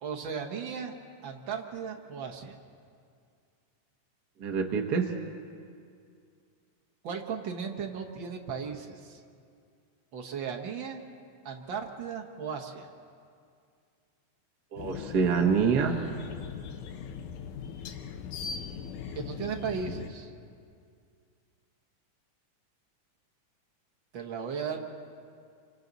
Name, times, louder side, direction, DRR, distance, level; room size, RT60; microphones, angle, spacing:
voice 1, 0.0-0.9 1.2-2.6 7.0-9.2 10.1-11.0 11.4-12.9 19.1-20.3 24.1-24.8, right 6 dB, 55° right, 3 dB, 1.4 m, -36 dB
voice 2, 4.4-5.2 14.7-16.0, right 5 dB, 80° right, 3 dB, 0.9 m, -26 dB
sound 1, 14.8-20.1, left 6 dB, 75° left, 2.3 m, -39 dB
28.5 x 25.0 x 4.0 m, 2.3 s
omnidirectional pair, 3.7 m